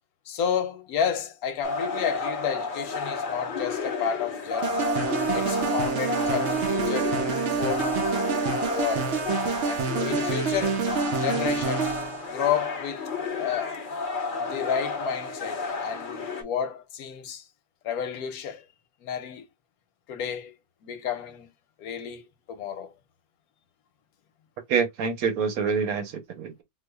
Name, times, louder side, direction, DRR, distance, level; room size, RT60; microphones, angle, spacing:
voice 1, 0.3-4.8 5.3-7.2 7.5-7.9 8.7-9.2 9.6-10.9 11.2-11.9 12.3-13.1 13.4-13.8 14.4-17.5 17.8-18.7 19.0-19.4 20.1-20.5 20.8-21.5 21.8-22.9, left 8 dB, 85° left, 1.2 m, -31 dB
sound 1, 1.6-16.4, left 4 dB, 45° left, 0.8 m, -32 dB
sound 2, 4.6-12.3, right 5 dB, 60° right, 0.9 m, -27 dB
voice 2, 24.7-26.6, right 6 dB, 75° right, 1.3 m, -26 dB
4.6 x 2.4 x 2.2 m
omnidirectional pair, 1.5 m